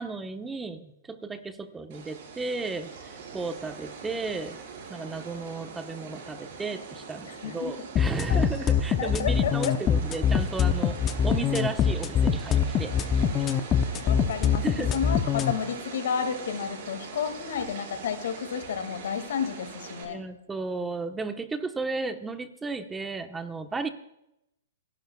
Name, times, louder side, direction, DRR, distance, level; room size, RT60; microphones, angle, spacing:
voice 1, 0.0-4.6 4.9-11.0 11.2-13.5 14.6-15.0 20.0-23.9, right 3 dB, 10° right, 7 dB, 1.1 m, -34 dB
sound 1, 1.9-20.0, right 5 dB, 50° right, 5.2 m, -42 dB
voice 2, 7.2-7.9 8.3-8.5 9.0-9.8 14.0-14.6 14.9-20.2, left 7 dB, 70° left, 8 dB, 2.2 m, -31 dB
sound 2, 8.0-15.5, left 8 dB, 25° left, 0.8 m, -23 dB
27.5 x 11.5 x 2.4 m, 0.82 s
hypercardioid pair, 135°, 0 cm